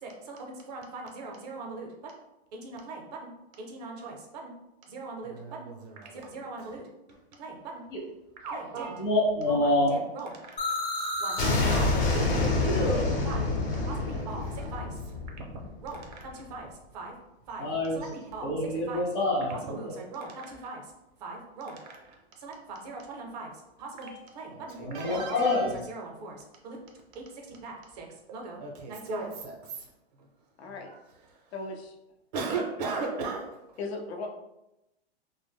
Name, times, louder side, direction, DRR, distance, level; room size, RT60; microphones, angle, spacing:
voice 1, 0.0-2.1 2.5-3.3 3.6-4.5 4.9-6.8 7.3-7.8 8.4-9.0 9.5-10.7 11.2-11.4 11.7-11.9 12.3-12.5 12.8-12.9 13.2-15.0 15.8-16.7 16.9-17.1 17.5-17.7 17.9-18.5 18.9-19.0 19.5-20.8 21.2-23.5 23.8-26.4 26.6-26.8 27.1-27.2 27.6-29.9 30.7-31.0 32.3-33.5, right 3 dB, 40° right, 1 dB, 0.5 m, -39 dB
voice 2, 9.0-9.9 12.4-13.1 17.6-18.1 18.4-19.5 24.8-25.7, left 2 dB, 15° left, -3 dB, 0.4 m, -27 dB
sound 1, 10.6-16.3, left 2 dB, 55° left, 0.9 m, -28 dB
voice 3, 30.6-30.9 31.5-31.9 33.8-34.3, left 3 dB, 75° left, 2 dB, 0.7 m, -36 dB
2.1 x 2.0 x 3.3 m, 0.92 s
hypercardioid pair, 150°, 32 cm